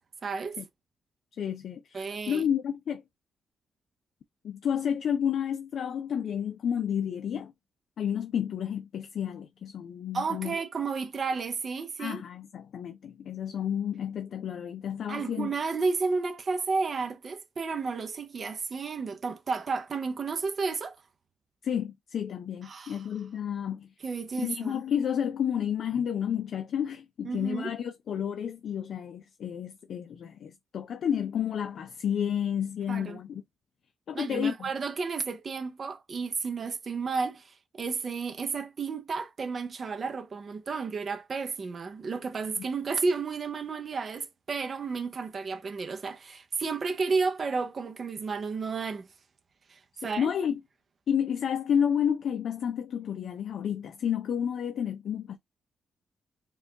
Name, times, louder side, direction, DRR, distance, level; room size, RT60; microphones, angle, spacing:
voice 1, 0.2-0.6 1.9-2.4 10.1-12.2 15.1-21.0 22.6-23.1 24.0-24.8 27.2-27.7 32.9-33.2 34.1-49.1 49.7-50.3, right 4 dB, 35° right, 0.5 m, -32 dB
voice 2, 1.4-3.0 4.4-7.5 8.0-10.6 12.0-15.5 21.6-23.9 24.4-33.4 34.1-34.7 50.0-50.6 51.1-55.4, left 8 dB, 55° left, 0.5 m, -31 dB
4.7 x 2.3 x 3.5 m
wide cardioid pair, 180°, 0 cm